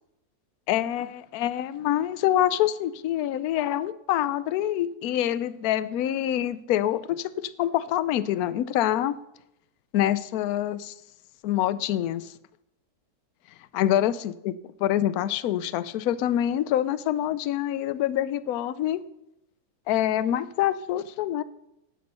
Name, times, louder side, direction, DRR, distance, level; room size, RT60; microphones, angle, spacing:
voice 1, 0.7-9.1 9.9-10.9 11.4-12.3 13.7-14.5 14.8-19.0 19.9-21.4, left 12 dB, 70° left, 16 dB, 1.0 m, -26 dB
12.5 x 9.6 x 5.5 m, 0.86 s
omnidirectional pair, 1.7 m